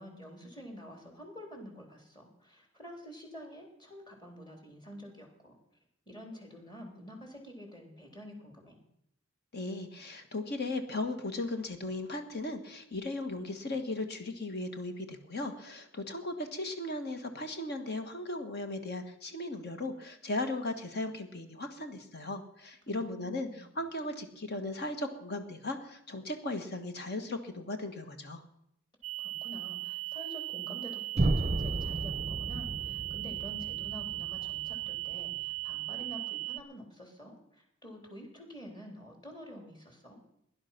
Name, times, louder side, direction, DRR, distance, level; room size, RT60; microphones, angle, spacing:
voice 1, 0.0-5.6 6.1-8.8 22.8-23.6 29.2-40.2, equal, 20° left, 2 dB, 3.5 m, -48 dB
voice 2, 9.5-28.4, left 2 dB, 50° left, 7 dB, 1.5 m, -37 dB
sound 1, 29.0-36.6, right 20 dB, 75° right, 0.4 m, -38 dB
sound 2, 31.2-35.1, right 2 dB, 30° right, 0.6 m, -33 dB
17.0 x 11.0 x 5.9 m, 0.77 s
head